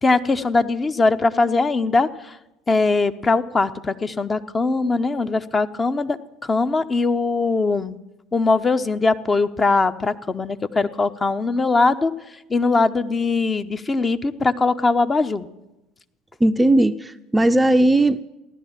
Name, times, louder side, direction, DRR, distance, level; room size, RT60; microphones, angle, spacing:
voice 1, 0.0-2.4 2.7-8.0 8.3-12.1 12.5-15.5, left 3 dB, 25° left, 10 dB, 0.9 m, -21 dB
voice 2, 16.4-18.2, right 1 dB, 10° right, 10 dB, 0.6 m, -17 dB
15.5 x 11.5 x 7.3 m, 0.93 s
figure-of-eight pair, 65°, 0 cm